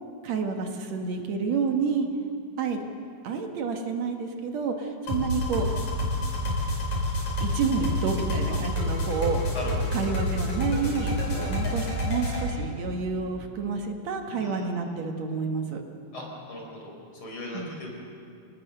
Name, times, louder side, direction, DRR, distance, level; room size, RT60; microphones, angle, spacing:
voice 1, 0.2-2.1 2.6-2.8 3.2-5.7 7.4-9.5 9.9-15.8 17.5-17.8, right 5 dB, 70° right, 4 dB, 2.6 m, -29 dB
sound 1, 5.1-12.5, left 1 dB, 85° left, 6.2 m, -28 dB
voice 2, 9.5-10.0 14.4-14.7 16.1-17.9, left 1 dB, 45° left, -1 dB, 5.2 m, -38 dB
26.5 x 19.5 x 6.7 m, 2.4 s
omnidirectional pair, 3.3 m